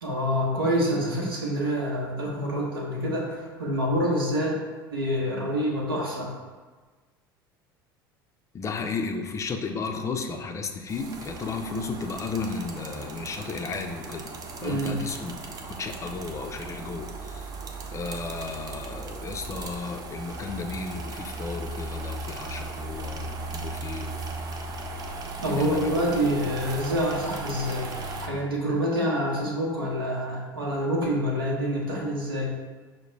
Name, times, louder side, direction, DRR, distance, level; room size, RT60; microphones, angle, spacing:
voice 1, 0.0-4.6 4.9-6.3 14.6-15.0 25.4-27.9 28.2-32.5, equal, 80° right, -3 dB, 0.9 m, -27 dB
voice 2, 8.5-14.3 14.6-15.4 15.7-17.5 17.9-24.2 25.4-26.1, left 4 dB, 25° left, 4 dB, 0.4 m, -34 dB
sound 1, 10.9-28.3, right 3 dB, 30° right, 0.5 m, -37 dB
5.6 x 2.1 x 3.1 m, 1.4 s
figure-of-eight pair, 70°, 12 cm